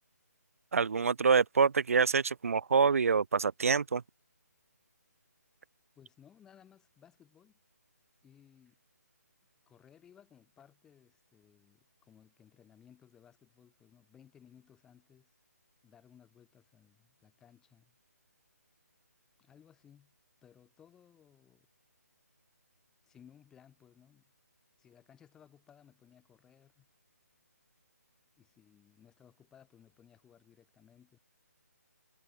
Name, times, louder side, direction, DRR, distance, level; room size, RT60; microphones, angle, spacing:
voice 1, 0.7-4.0, right 5 dB, 55° right, 0.6 m, -26 dB
voice 2, 6.0-7.6 8.2-8.8 9.7-15.3 15.8-18.0 19.4-20.1 20.4-21.7 23.0-24.2 24.8-26.9 28.4-31.2, left 8 dB, 5° left, 7.7 m, -61 dB
hypercardioid pair, 170°, 9 cm